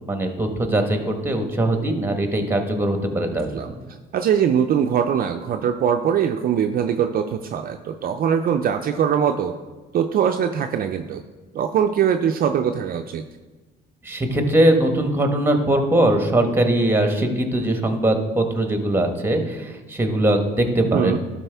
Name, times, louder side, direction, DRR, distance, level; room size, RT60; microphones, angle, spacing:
voice 1, 0.1-3.7 14.0-21.2, right 1 dB, 10° right, 5 dB, 1.2 m, -21 dB
voice 2, 4.1-9.5 9.9-11.2 11.5-13.2 20.9-21.2, right 8 dB, 50° right, 6 dB, 0.4 m, -22 dB
12.0 x 4.2 x 3.4 m, 1.2 s
supercardioid pair, 75°, 20 cm